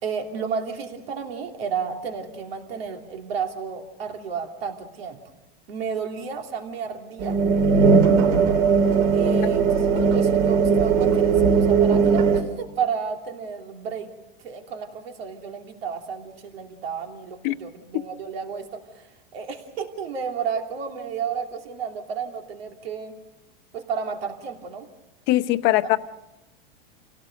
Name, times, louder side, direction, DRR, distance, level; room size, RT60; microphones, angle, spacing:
voice 1, 0.0-5.2 5.7-7.4 9.1-14.1 14.4-23.2 23.7-24.9 25.6-25.7, right 6 dB, 85° right, 3 dB, 2.9 m, -32 dB
sound 1, 7.2-12.4, right 5 dB, 50° right, 2.8 m, -18 dB
voice 2, 25.3-26.0, left 17 dB, 40° left, 11 dB, 0.9 m, -21 dB
28.5 x 17.5 x 6.5 m, 0.97 s
supercardioid pair, 145°, 29 cm